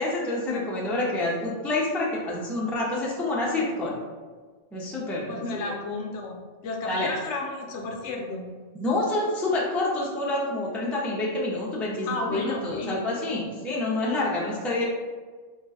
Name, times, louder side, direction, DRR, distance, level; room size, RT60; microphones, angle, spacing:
voice 1, 0.0-4.0 4.7-5.6 6.8-7.1 8.7-14.8, left 2 dB, ahead, -5 dB, 0.5 m, -28 dB
voice 2, 5.3-8.5 12.0-13.0, left 3 dB, 75° left, 1 dB, 0.9 m, -32 dB
3.7 x 2.4 x 4.0 m, 1.4 s
omnidirectional pair, 1.2 m